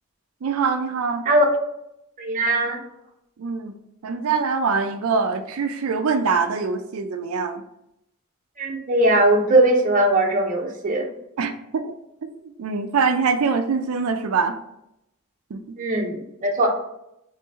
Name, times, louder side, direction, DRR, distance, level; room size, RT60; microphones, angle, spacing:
voice 1, 0.4-1.3 3.4-3.7 4.0-7.6 11.4-11.9 12.6-14.6 15.5-15.8, right 5 dB, 90° right, 6 dB, 0.4 m, -23 dB
voice 2, 2.2-2.8 8.6-11.1 15.8-16.7, right 1 dB, 40° right, 1 dB, 0.7 m, -19 dB
3.7 x 3.2 x 4.0 m, 0.83 s
head